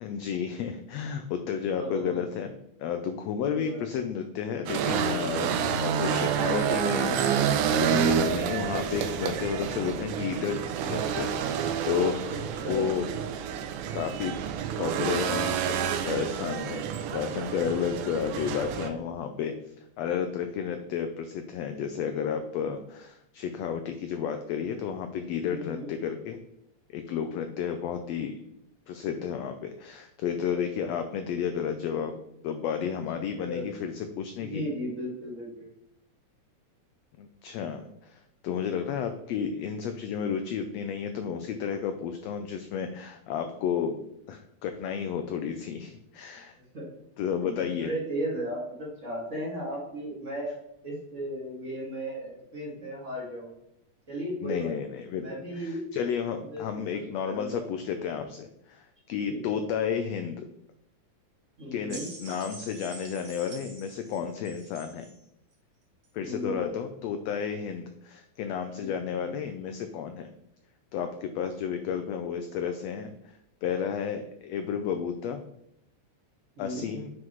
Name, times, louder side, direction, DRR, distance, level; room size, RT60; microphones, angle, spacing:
voice 1, 0.0-2.5 2.8-12.3 12.6-13.0 13.9-14.3 14.8-26.4 26.9-28.4 28.9-32.1 32.4-34.6 37.2-44.0 44.3-46.6 47.2-47.9 54.4-55.3 55.5-60.5 61.7-65.1 66.1-70.3 70.9-75.4 76.6-77.1, left 7 dB, 85° left, 7 dB, 1.5 m, -32 dB
voice 2, 1.6-2.3 3.4-4.1 5.3-5.8 12.3-12.9 25.5-25.9 32.7-32.8 33.4-33.7 34.4-35.7 45.7-45.8 46.7-46.9 47.4-50.5 50.8-53.5 54.1-54.7 55.2-55.9 56.5-57.6 59.3-59.6 61.6-62.1 66.2-66.7 68.8-69.2 76.6-76.9, equal, 30° right, -5 dB, 1.9 m, -36 dB
sound 1, 4.7-18.9, right 7 dB, 85° right, 2.1 m, -28 dB
sound 2, 61.9-65.2 66.0-66.1, right 3 dB, 50° right, 1.1 m, -46 dB
7.4 x 5.9 x 3.0 m, 0.78 s
omnidirectional pair, 3.5 m